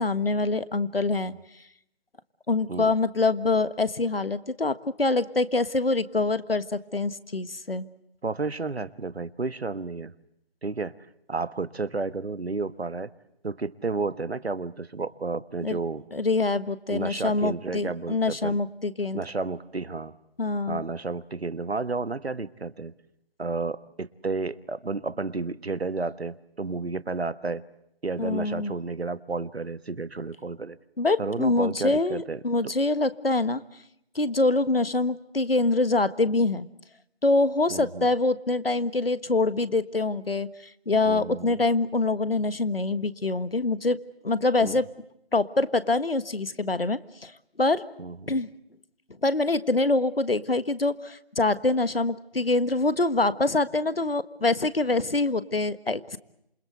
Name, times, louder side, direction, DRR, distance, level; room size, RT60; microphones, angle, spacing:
voice 1, 0.0-1.3 2.5-7.8 15.6-15.8 16.1-19.2 20.4-20.8 28.2-28.7 31.0-33.6 34.1-36.7 37.2-40.5 40.9-44.0 44.2-44.9 45.3-47.3 47.6-47.8 48.3-48.5 49.2-56.2, left 2 dB, 70° left, 14 dB, 1.6 m, -25 dB
voice 2, 8.2-10.1 10.6-11.0 11.3-13.1 13.4-16.0 16.9-18.6 19.1-20.1 20.7-22.9 23.4-27.6 28.0-30.8 31.2-32.7 37.7-38.1 41.0-41.6 44.6-44.8 48.0-48.4, right 3 dB, 80° right, 15 dB, 1.4 m, -32 dB
28.0 x 22.0 x 7.9 m, 0.78 s
figure-of-eight pair, 180°, 31 cm